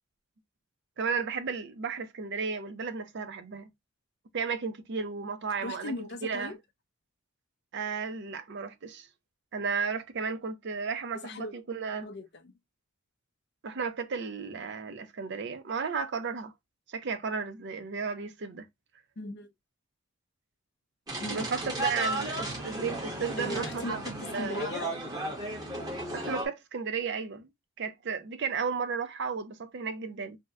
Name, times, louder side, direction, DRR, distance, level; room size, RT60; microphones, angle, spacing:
voice 1, 1.0-3.7 4.3-6.6 7.7-9.1 9.5-12.1 13.6-16.5 16.9-18.7 21.3-24.0 24.3-24.6 26.1-27.5 27.8-30.4, right 5 dB, 55° right, 0.5 m, -34 dB
voice 2, 5.6-6.6 11.2-11.5 12.0-12.5 19.2-19.5 21.2-21.5 23.4-24.9, left 2 dB, 50° left, 0.5 m, -38 dB
sound 1, 21.1-26.5, right 1 dB, 20° right, 0.9 m, -34 dB
2.7 x 2.1 x 3.4 m
head